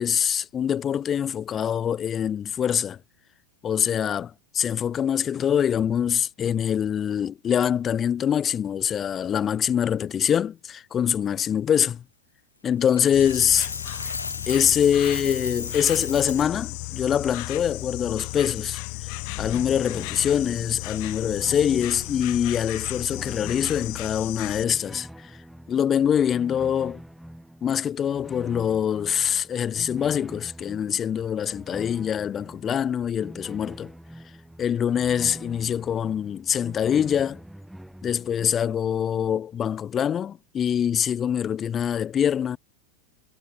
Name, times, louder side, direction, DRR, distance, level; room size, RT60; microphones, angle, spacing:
voice 1, 0.0-3.0 3.6-12.0 12.6-13.7 14.5-18.8 19.4-25.3 25.7-27.0 27.6-33.9 34.6-37.4 38.0-42.6, left 8 dB, 25° left, 0.7 m, -24 dB
Coin (dropping), 13.0-16.5, left 3 dB, 80° left, 0.5 m, -34 dB
Insect, 13.1-24.6, left 40 dB or more, 45° left, 1.4 m, -35 dB
sound 1, 19.2-38.5, right 1 dB, ahead, 2.9 m, -45 dB
figure-of-eight pair, 90°, 0 cm